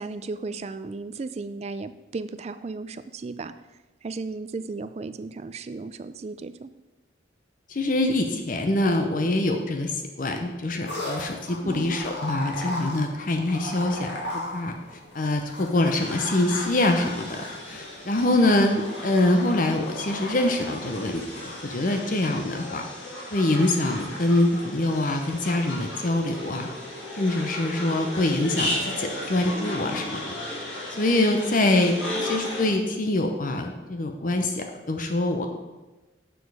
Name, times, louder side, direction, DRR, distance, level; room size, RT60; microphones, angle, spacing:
voice 1, 0.0-3.5 4.0-6.7 11.6-12.0 18.4-18.8, right 3 dB, 35° right, 12 dB, 0.3 m, -35 dB
voice 2, 7.7-14.7 15.1-22.8 23.3-26.7 27.1-30.3 30.9-35.5, left 2 dB, 45° left, 4 dB, 0.6 m, -24 dB
sound 1, 10.9-21.8, left 1 dB, 65° left, 1.9 m, -37 dB
sound 2, 16.0-32.7, left 1 dB, 90° left, 2.9 m, -35 dB
6.9 x 6.2 x 4.8 m, 1.1 s
head